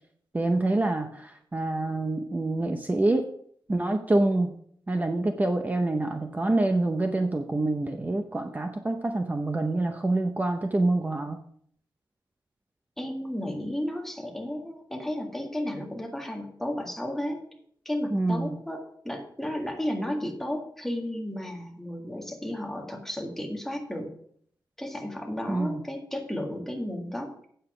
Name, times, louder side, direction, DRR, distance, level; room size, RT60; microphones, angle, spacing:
voice 1, 0.3-3.3 3.7-4.5 4.9-11.4 18.1-18.5 25.5-25.8, right 2 dB, 20° right, 5 dB, 0.6 m, -26 dB
voice 2, 13.0-17.4 17.8-24.1 24.8-27.5, left 1 dB, 5° left, 1 dB, 1.8 m, -33 dB
8.8 x 7.8 x 4.9 m, 0.63 s
wide cardioid pair, 165°, 8 cm